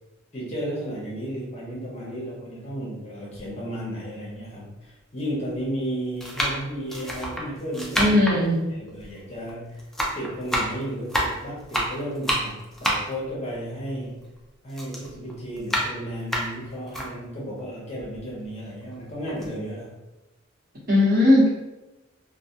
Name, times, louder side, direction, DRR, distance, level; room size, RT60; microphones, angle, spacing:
voice 1, 0.3-8.2 8.7-9.9 10.1-14.3 14.6-20.0, equal, 30° left, -5 dB, 0.8 m, -33 dB
sound 1, 3.4-3.5 4.3-4.4 5.4-5.7 6.2-9.5 9.8-14.4 14.7-17.1 17.6-17.7 18.0-18.9 19.3-19.5, equal, ahead, 0.3 m, -29 dB
voice 2, 8.0-8.6 20.9-21.5, left 1 dB, 45° right, -8 dB, 1.0 m, -18 dB
2.3 x 2.2 x 2.7 m, 1.0 s
head